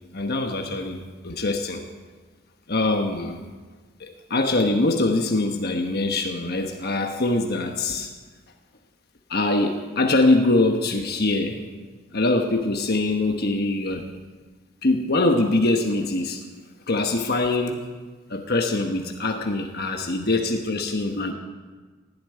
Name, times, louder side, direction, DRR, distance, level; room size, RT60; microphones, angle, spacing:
voice 1, 0.1-1.8 2.7-3.5 4.0-8.1 9.3-11.6 12.1-14.0 14.8-16.4 16.9-17.8 18.3-21.3, left 2 dB, 50° left, 3 dB, 1.2 m, -23 dB
17.0 x 8.6 x 9.6 m, 1.4 s
head